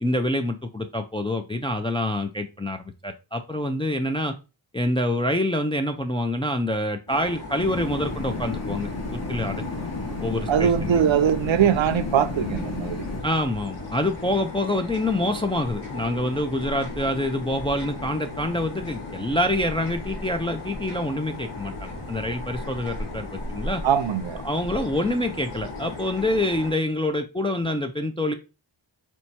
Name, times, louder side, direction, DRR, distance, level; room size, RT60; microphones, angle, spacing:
voice 1, 0.0-4.3 4.7-9.6 10.2-11.0 13.2-23.8 24.4-28.3, left 1 dB, 10° left, 0.3 m, -26 dB
sound 1, 7.1-26.7, left 2 dB, 55° left, 1.3 m, -37 dB
sound 2, 7.6-13.2, left 3 dB, 35° left, 0.8 m, -32 dB
sound 3, 8.2-26.0, left 3 dB, 90° left, 0.9 m, -44 dB
voice 2, 10.5-13.1 23.8-24.4, right 9 dB, 70° right, 0.6 m, -21 dB
4.5 x 2.2 x 4.1 m
wide cardioid pair, 70°, 48 cm